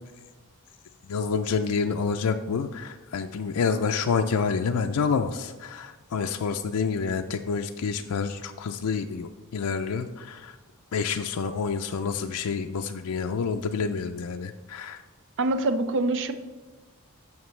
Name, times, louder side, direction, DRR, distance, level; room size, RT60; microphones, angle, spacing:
voice 1, 1.1-10.5 10.9-15.0, left 5 dB, 80° left, 5 dB, 0.4 m, -28 dB
voice 2, 15.4-16.3, right 2 dB, 55° right, 9 dB, 0.5 m, -25 dB
14.0 x 5.9 x 3.2 m, 1.3 s
head